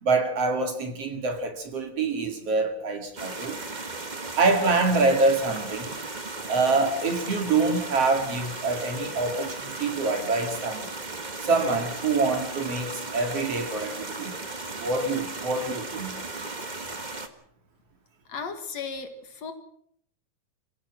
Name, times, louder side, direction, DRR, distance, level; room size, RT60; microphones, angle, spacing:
voice 1, 0.0-3.6 4.4-5.9 6.5-10.9 11.4-14.3 14.8-16.1, right 3 dB, 50° right, 3.2 m, -25 dB
sound 1, 3.2-17.3, right 3 dB, 35° right, 0.7 m, -36 dB
voice 2, 18.3-19.5, left 5 dB, 60° left, 2.9 m, -35 dB
26.5 x 17.0 x 6.2 m
omnidirectional pair, 3.6 m